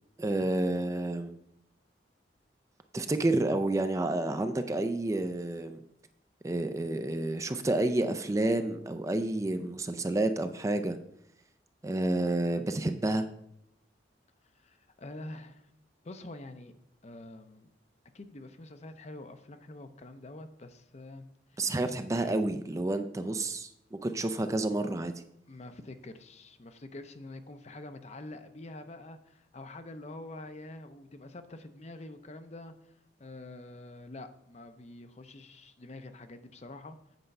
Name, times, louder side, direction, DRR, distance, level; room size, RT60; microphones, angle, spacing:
voice 1, 0.2-1.3 2.9-5.8 6.4-11.0 11.8-13.2 21.6-25.1, right 2 dB, 15° right, 9 dB, 0.4 m, -29 dB
voice 2, 14.5-15.7 16.0-16.7 17.0-17.7 18.1-21.7 25.5-32.9 33.2-37.0, left 2 dB, 40° left, 9 dB, 0.6 m, -46 dB
8.0 x 4.3 x 6.5 m, 0.77 s
head